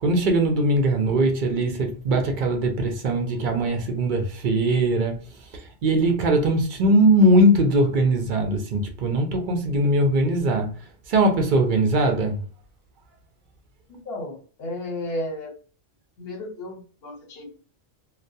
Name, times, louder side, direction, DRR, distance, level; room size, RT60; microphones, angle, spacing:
voice 1, 0.0-5.2 5.8-10.7 11.1-12.4, right 1 dB, 55° right, 0.6 m, -20 dB
voice 2, 13.9-15.5 16.2-17.5, left 1 dB, 60° left, 1.0 m, -33 dB
2.2 x 2.2 x 2.6 m
omnidirectional pair, 1.2 m